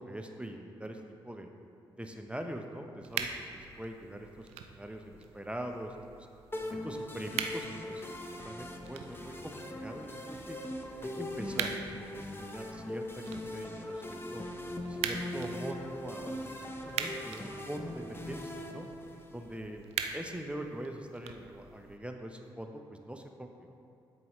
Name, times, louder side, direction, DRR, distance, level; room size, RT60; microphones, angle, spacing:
voice 1, 0.0-1.5 1.9-5.9 6.7-8.1 8.4-10.6 11.0-11.7 12.0-14.4 14.9-16.5 16.8-18.9 19.3-19.8 20.1-23.7, right 1 dB, 10° right, 3 dB, 0.9 m, -43 dB
sound 1, 3.0-22.0, right 7 dB, 85° right, 0.4 m, -43 dB
sound 2, 6.5-19.6, left 1 dB, 20° left, 1.0 m, -41 dB
12.5 x 4.8 x 3.2 m, 2.7 s
supercardioid pair, 40°, 10 cm